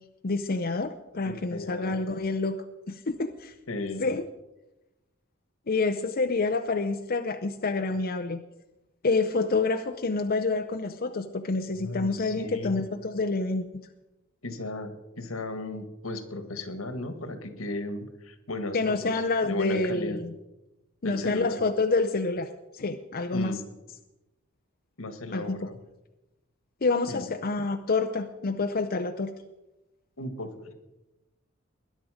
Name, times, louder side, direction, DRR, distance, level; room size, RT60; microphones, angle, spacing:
voice 1, 0.2-2.6 2.9-3.5 4.0-4.3 5.7-8.4 9.0-13.6 18.7-20.3 21.0-23.6 25.3-25.6 26.8-29.3, left 3 dB, 45° left, 7 dB, 0.7 m, -28 dB
voice 2, 1.2-2.0 3.7-4.1 11.7-12.8 14.4-20.2 21.0-21.6 23.3-23.6 25.0-25.8 27.1-27.3 30.2-30.7, left 2 dB, 80° left, 9 dB, 1.7 m, -35 dB
20.5 x 10.5 x 5.0 m, 0.99 s
head